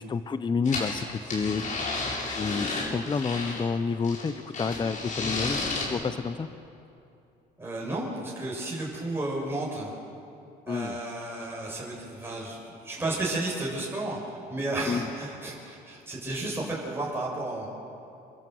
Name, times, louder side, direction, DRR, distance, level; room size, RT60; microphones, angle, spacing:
voice 1, 0.0-1.6 2.3-6.5 10.7-11.0 14.9-15.0, left 5 dB, 25° left, 11 dB, 0.9 m, -29 dB
sound 1, 0.7-3.7 4.0-5.9, left 3 dB, 50° left, 8.0 m, -32 dB
voice 2, 7.6-9.9 10.7-17.7, right 2 dB, 15° right, -4 dB, 6.5 m, -33 dB
28.0 x 23.5 x 8.0 m, 2.6 s
cardioid pair, 110°, 17 cm